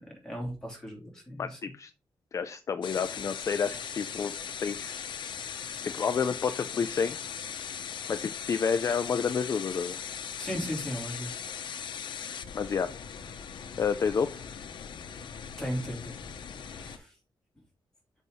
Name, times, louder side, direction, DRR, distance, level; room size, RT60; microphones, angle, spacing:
voice 1, 0.2-1.6 10.4-11.3 15.6-16.3 16.6-17.2, equal, 5° left, -1 dB, 2.9 m, -36 dB
voice 2, 1.4-1.9 2.3-4.3 4.6-5.0 5.8-7.2 8.1-10.0 12.5-12.9 13.8-14.4, left 6 dB, 35° left, 10 dB, 0.4 m, -29 dB
sound 1, 2.8-17.0, left 7 dB, 65° left, 0.9 m, -39 dB
6.8 x 5.4 x 4.7 m, 0.33 s
wide cardioid pair, 175°, 8 cm